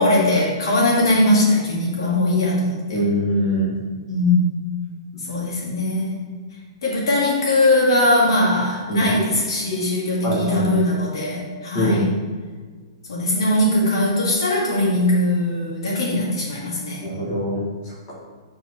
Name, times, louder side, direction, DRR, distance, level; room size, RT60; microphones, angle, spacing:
voice 1, 0.0-3.0 4.1-4.5 5.2-6.2 6.8-12.1 13.1-17.0, left 1 dB, 75° left, -4 dB, 1.9 m, -20 dB
voice 2, 2.9-3.7 8.9-9.1 10.2-10.7 11.7-12.0 17.0-18.1, equal, 25° left, -7 dB, 1.8 m, -23 dB
8.0 x 4.3 x 3.1 m, 1.5 s
hypercardioid pair, 180°, 3 cm